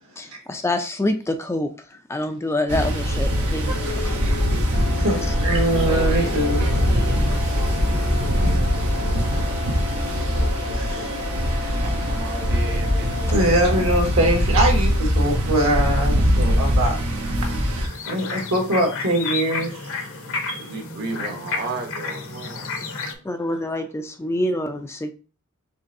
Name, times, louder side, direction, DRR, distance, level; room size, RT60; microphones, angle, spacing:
voice 1, 0.2-4.2 5.0-5.4 7.9-8.0 23.2-25.1, left 1 dB, 10° left, 0.3 m, -27 dB
sound 1, 2.7-17.9, equal, 90° right, 1.1 m, -22 dB
sound 2, 4.7-14.0, left 8 dB, 90° left, 1.5 m, -35 dB
voice 2, 5.0-6.7 8.4-8.5 10.1-10.4 10.7-11.2 13.3-17.0 17.5-19.8 20.5-20.6, right 1 dB, 70° right, 1.6 m, -23 dB
voice 3, 5.7-8.6 9.0-9.7 11.8-13.2 20.6-22.9, right 2 dB, 50° right, 0.9 m, -35 dB
sound 3, 17.8-23.1, left 4 dB, 65° left, 0.8 m, -31 dB
5.2 x 3.3 x 2.6 m
head